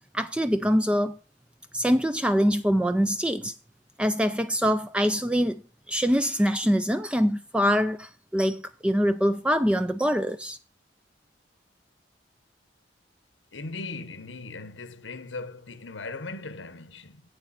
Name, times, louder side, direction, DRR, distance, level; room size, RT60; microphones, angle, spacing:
voice 1, 0.1-1.2 1.7-3.5 4.0-5.6 5.9-10.6, equal, 5° right, 0.4 m, -24 dB
voice 2, 13.5-17.2, left 3 dB, 90° left, 1.1 m, -38 dB
8.2 x 8.0 x 4.2 m
head